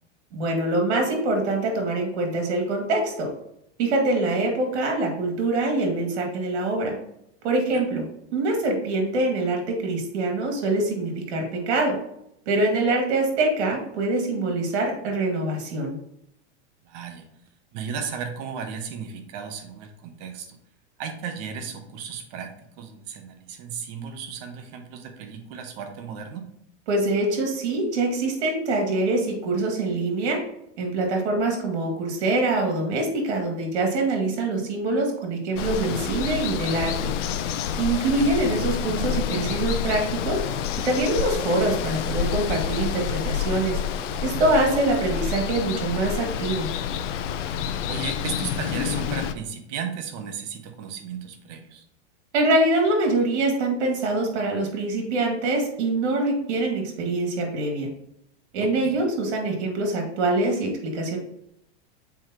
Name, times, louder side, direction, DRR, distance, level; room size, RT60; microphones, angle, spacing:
voice 1, 0.3-3.3 3.8-6.9 7.4-8.0 8.3-11.9 12.5-16.0 26.9-30.4 30.8-37.1 37.8-40.4 40.9-43.8 44.2-46.7 52.3-57.9 58.5-61.2, right 2 dB, 65° right, 2 dB, 2.2 m, -24 dB
voice 2, 16.8-17.3 17.7-20.6 21.0-26.5 38.2-38.3 47.9-51.8 58.6-59.0, right 7 dB, 35° right, 5 dB, 0.8 m, -35 dB
Water, 35.6-49.3, left 8 dB, 85° left, 0.6 m, -28 dB
7.2 x 4.6 x 2.9 m, 0.78 s
supercardioid pair, 165°, 36 cm